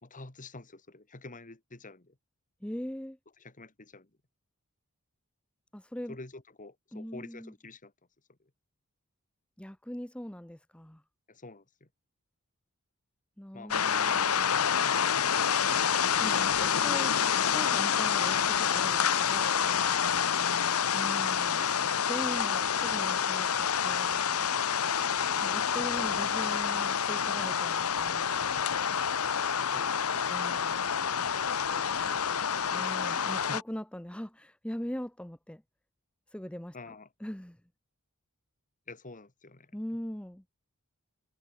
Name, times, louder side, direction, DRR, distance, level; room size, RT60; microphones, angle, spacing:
voice 1, 0.0-2.2 3.4-4.1 6.1-7.9 8.4-8.5 11.3-11.9 13.5-14.4 16.8-16.9 19.8-20.0 25.4-25.6 25.9-26.1 29.6-30.4 31.8-32.7 33.0-33.6 36.7-37.1 38.9-39.7, left 3 dB, 35° left, 2.1 m, -48 dB
voice 2, 2.6-3.2 5.7-6.2 6.9-7.5 9.6-11.0 13.4-14.5 16.2-19.7 20.9-21.7 22.0-24.3 25.4-28.3 30.3-30.8 32.7-35.6 36.3-36.9 37.2-37.6 39.7-40.4, equal, 5° left, 0.8 m, -41 dB
sound 1, 13.7-33.6, left 7 dB, 80° left, 1.0 m, -28 dB
head